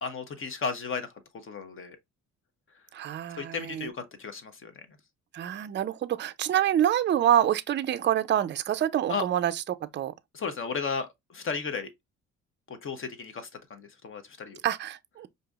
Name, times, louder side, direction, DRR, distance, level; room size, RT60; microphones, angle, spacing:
voice 1, 0.0-1.1 1.4-2.0 3.4-4.8 9.1-9.2 10.3-11.9 12.7-14.6, left 5 dB, 45° left, 0.9 m, -34 dB
voice 2, 2.9-3.9 5.3-10.1 14.6-15.3, right 11 dB, 40° right, 0.4 m, -26 dB
4.8 x 2.7 x 2.3 m
cardioid pair, 90°, 30 cm